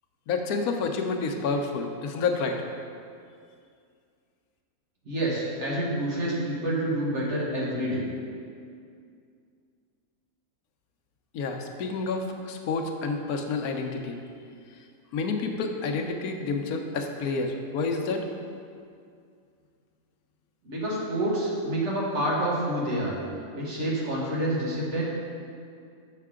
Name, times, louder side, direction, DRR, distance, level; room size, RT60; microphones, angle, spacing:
voice 1, 0.3-2.6 11.3-14.2 15.1-18.3, left 4 dB, 90° left, 4 dB, 1.2 m, -29 dB
voice 2, 5.0-8.0 20.6-23.2 23.5-25.0, right 1 dB, 55° right, -5 dB, 1.7 m, -28 dB
6.6 x 6.6 x 3.6 m, 2.3 s
omnidirectional pair, 1.5 m